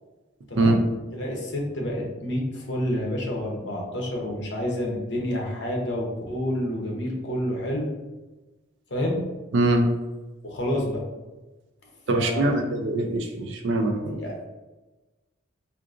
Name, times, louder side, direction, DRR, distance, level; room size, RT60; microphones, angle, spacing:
voice 1, 1.1-7.9 8.9-9.2 10.4-11.0 12.1-12.5 14.2-14.4, left 1 dB, 55° left, -1 dB, 0.7 m, -28 dB
voice 2, 9.5-9.9 12.1-14.2, right 2 dB, 65° right, 5 dB, 0.4 m, -23 dB
3.7 x 2.5 x 2.4 m, 1.1 s
head